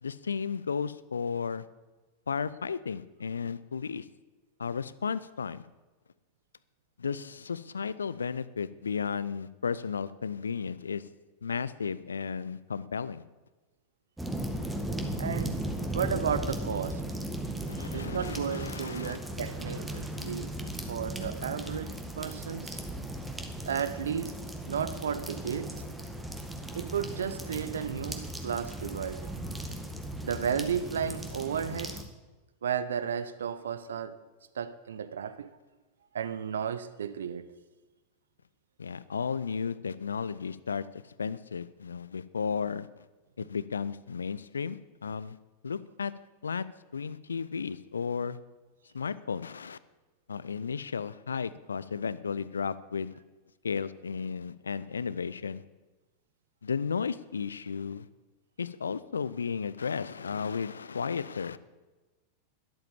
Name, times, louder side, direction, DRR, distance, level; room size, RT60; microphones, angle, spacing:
voice 1, 0.0-1.6 2.3-4.1 4.6-5.6 7.0-11.0 11.4-13.2 17.7-19.2 38.8-40.8 41.2-43.1 43.4-45.4 45.6-46.1 46.4-46.6 46.9-48.4 48.9-49.8 50.3-53.1 53.6-55.6 56.6-58.1 58.6-61.6, left 6 dB, 70° left, 17 dB, 0.6 m, -34 dB
sound 1, 14.2-32.0, right 1 dB, 5° right, 1.8 m, -37 dB
voice 2, 15.2-15.6 15.9-17.0 17.8-20.5 20.9-22.8 23.7-25.7 26.7-29.3 30.2-32.0 32.6-34.2 34.5-35.5 36.1-37.5, right 7 dB, 65° right, 13 dB, 0.9 m, -33 dB
12.5 x 12.0 x 7.2 m, 1.2 s
figure-of-eight pair, 90°, 0 cm